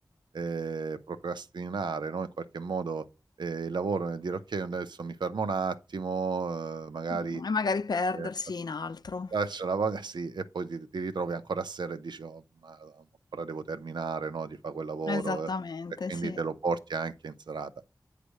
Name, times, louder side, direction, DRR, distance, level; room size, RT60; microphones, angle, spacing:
voice 1, 0.3-3.1 3.4-7.4 8.1-8.3 9.3-13.0 13.3-15.5 16.1-17.7, right 4 dB, 90° right, 0.7 m, -33 dB
voice 2, 7.1-9.3 15.1-16.4, left 4 dB, 65° left, 0.5 m, -32 dB
9.1 x 3.3 x 6.4 m
wide cardioid pair, 50°, 7 cm